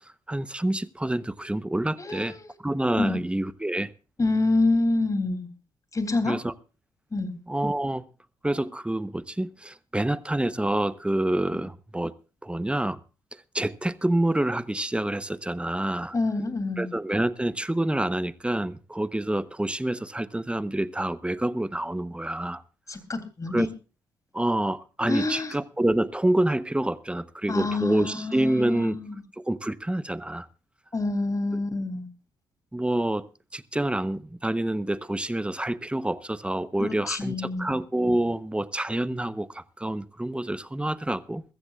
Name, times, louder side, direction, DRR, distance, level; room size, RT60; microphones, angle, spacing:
voice 1, 0.3-2.4 2.6-3.9 6.2-6.5 7.5-8.0 8.4-12.1 12.4-13.0 13.5-16.1 16.8-22.6 23.5-23.7 24.3-29.0 29.4-30.5 31.5-31.6 32.7-33.3 33.5-41.4, right 1 dB, 10° right, 16 dB, 0.9 m, -27 dB
voice 2, 2.0-2.5 3.0-3.2 4.2-5.5 5.9-6.4 7.1-7.3 16.1-16.9 22.9-23.7 25.1-25.5 27.5-29.2 30.9-32.1 36.8-37.8, left 2 dB, 30° left, 9 dB, 3.2 m, -27 dB
22.5 x 14.5 x 2.5 m, 0.32 s
hypercardioid pair, 45°, 12 cm